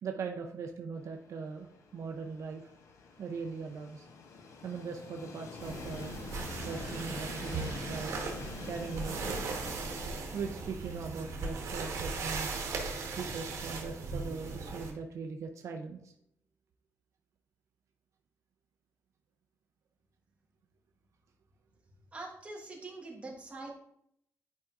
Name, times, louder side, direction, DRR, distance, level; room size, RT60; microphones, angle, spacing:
voice 1, 0.0-2.6 3.2-4.1 4.6-6.2 6.6-8.2 8.6-9.4 10.3-12.6 13.2-16.1, right 5 dB, 70° right, 4 dB, 0.5 m, -40 dB
Train, 0.9-13.9, left 4 dB, 80° left, 0.8 m, -48 dB
sound 1, 5.6-14.9, right 4 dB, 90° right, 1.2 m, -38 dB
voice 2, 22.1-23.7, right 2 dB, 25° right, -1 dB, 1.4 m, -44 dB
10.5 x 4.7 x 2.5 m, 0.74 s
wide cardioid pair, 135°, 5 cm